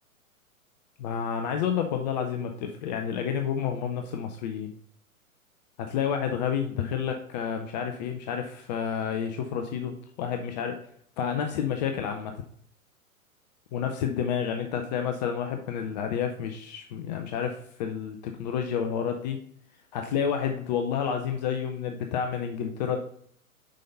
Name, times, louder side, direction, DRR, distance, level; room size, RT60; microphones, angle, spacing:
voice 1, 1.0-4.7 5.8-10.8 11.2-12.3 13.7-19.4 19.9-23.0, left 8 dB, 30° left, 5 dB, 0.6 m, -30 dB
6.4 x 5.4 x 4.0 m, 0.62 s
figure-of-eight pair, 110°, 43 cm